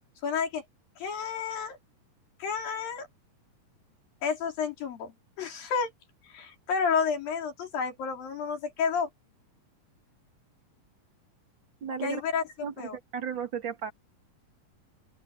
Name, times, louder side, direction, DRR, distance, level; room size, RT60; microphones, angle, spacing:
voice 1, 0.2-0.6 1.0-1.8 2.4-3.1 4.2-5.1 5.4-5.9 6.3-9.1 12.0-12.4 12.8-13.0, left 6 dB, 80° left, 5.6 m, -30 dB
voice 2, 11.8-12.2 12.6-13.9, right 7 dB, 40° right, 2.3 m, -34 dB
open air
omnidirectional pair, 4.0 m